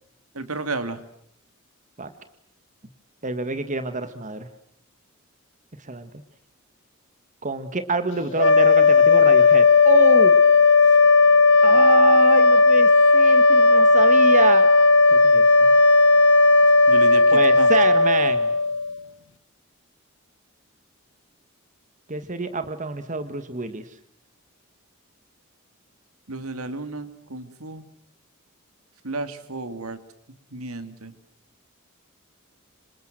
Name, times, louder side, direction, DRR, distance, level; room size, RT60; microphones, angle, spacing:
voice 1, 0.3-1.0 16.9-17.7 26.3-27.8 29.0-30.0 30.5-31.1, right 2 dB, 85° right, 10 dB, 2.7 m, -32 dB
voice 2, 3.2-4.5 5.9-6.1 7.4-10.3 11.6-14.7 15.1-15.7 17.3-18.5 22.1-23.8, right 3 dB, 35° right, 10 dB, 1.7 m, -27 dB
sound 1, 8.3-18.9, left 3 dB, 60° left, 2.0 m, -15 dB
28.0 x 26.0 x 7.7 m, 0.71 s
head